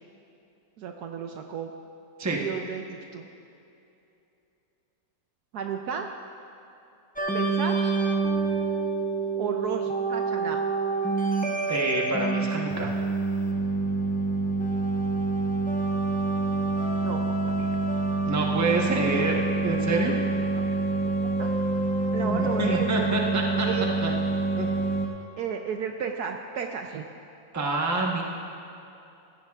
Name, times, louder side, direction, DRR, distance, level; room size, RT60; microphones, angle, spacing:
voice 1, 0.8-1.7 2.4-3.3 5.5-6.1 7.3-7.9 9.4-10.6 17.0-17.7 20.5-20.7 21.0-21.5 22.1-22.9 23.6-23.9 25.4-27.1, right 7 dB, 70° right, 4 dB, 1.0 m, -33 dB
sound 1, 7.2-25.1, right 3 dB, 10° left, 0.4 m, -27 dB
voice 2, 11.7-12.9 18.3-20.2 22.2-23.7 24.0-24.1 24.6-24.7 27.5-28.2, right 3 dB, 15° right, -1 dB, 0.7 m, -27 dB
16.5 x 14.5 x 2.4 m, 2.8 s
omnidirectional pair, 2.0 m